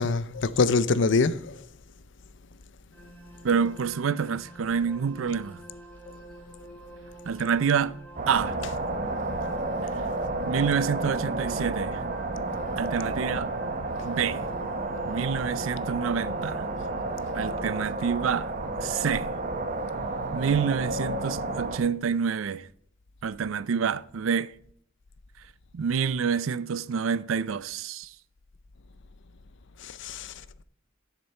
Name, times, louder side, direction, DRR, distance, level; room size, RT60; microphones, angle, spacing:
voice 1, 0.0-1.6 3.6-3.7 8.6-8.7 30.0-30.3, left 4 dB, 65° left, 0.6 m, -24 dB
sound 1, 2.9-17.7, right 1 dB, 10° left, 2.6 m, -48 dB
voice 2, 3.4-5.6 7.3-8.0 8.3-8.6 10.4-12.0 12.8-13.5 14.0-14.5 15.1-16.6 17.3-18.5 18.8-19.3 20.3-22.7 23.2-24.5 25.7-28.1, right 6 dB, 80° right, 0.4 m, -27 dB
sound 2, 8.2-21.8, right 2 dB, 40° right, 0.9 m, -31 dB
11.0 x 6.8 x 4.4 m
head